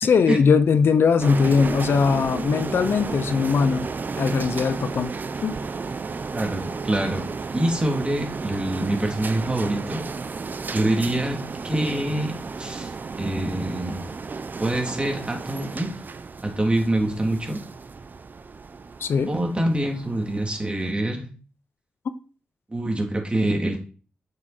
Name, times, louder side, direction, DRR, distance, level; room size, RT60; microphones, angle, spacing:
voice 1, 0.0-3.9 4.2-5.1 5.4-5.6 19.0-19.3 22.1-22.2, left 5 dB, 70° left, 0.8 m, -20 dB
sound 1, 1.2-20.9, right 4 dB, 50° right, 0.8 m, -33 dB
voice 2, 6.3-7.2 7.5-10.0 10.7-11.4 11.6-12.3 12.6-14.1 14.6-15.9 16.4-17.6 19.3-21.3 22.7-23.8, right 1 dB, 25° right, 3.3 m, -25 dB
9.5 x 6.7 x 4.5 m
cardioid pair, 55°, 4 cm